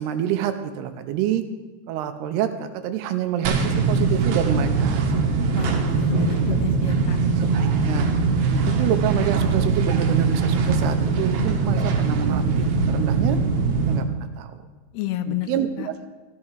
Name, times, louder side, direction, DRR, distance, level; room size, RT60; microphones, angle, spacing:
voice 1, 0.0-1.4 1.9-5.0 5.4-5.8 7.4-8.1 8.5-13.4 13.9-14.7 15.3-16.1, right 10 dB, 85° right, 9 dB, 2.9 m, -27 dB
sound 1, 3.5-14.0, right 4 dB, 65° right, 2.7 m, -21 dB
voice 2, 5.5-7.2 14.9-15.5 15.8-15.9, left 13 dB, 85° left, 10 dB, 2.7 m, -29 dB
14.0 x 12.0 x 4.9 m, 1.3 s
omnidirectional pair, 4.7 m